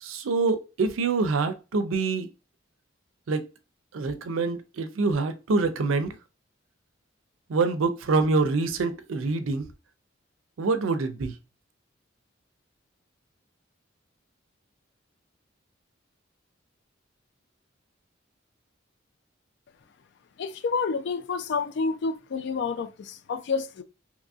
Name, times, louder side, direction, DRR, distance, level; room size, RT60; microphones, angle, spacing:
voice 1, 0.0-2.3 3.3-3.4 3.9-6.1 7.5-9.7 10.6-11.4, right 3 dB, 90° right, 0.5 m, -25 dB
voice 2, 20.4-23.8, left 4 dB, 60° left, 0.3 m, -29 dB
2.8 x 2.6 x 2.3 m
head